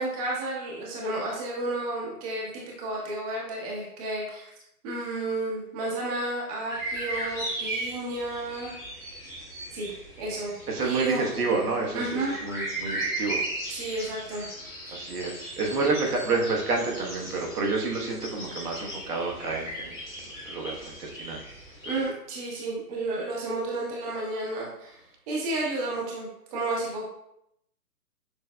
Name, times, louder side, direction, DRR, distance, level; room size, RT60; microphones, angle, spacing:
voice 1, 0.0-4.5 4.8-8.8 9.7-9.9 10.2-10.5 10.8-11.4 11.9-12.3 13.7-14.5 15.8-15.9 21.8-25.0 25.3-27.1, right 2 dB, 25° right, -3 dB, 0.9 m, -32 dB
sound 1, 6.7-22.0, right 1 dB, ahead, 0.4 m, -37 dB
voice 2, 10.7-13.4 14.9-19.9 20.5-21.4, right 3 dB, 75° right, 0 dB, 1.3 m, -29 dB
6.6 x 3.3 x 2.2 m, 0.78 s
hypercardioid pair, 135°, 46 cm